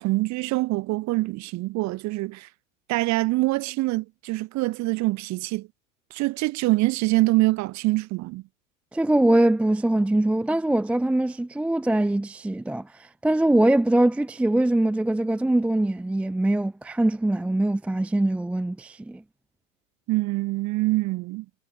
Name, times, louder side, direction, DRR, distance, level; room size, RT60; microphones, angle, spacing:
voice 1, 0.0-2.5 2.9-5.7 6.1-8.4 20.1-21.5, right 20 dB, 40° right, 5.8 m, -25 dB
voice 2, 8.9-19.2, right 1 dB, 5° right, 0.7 m, -22 dB
hypercardioid pair, 115°, 40 cm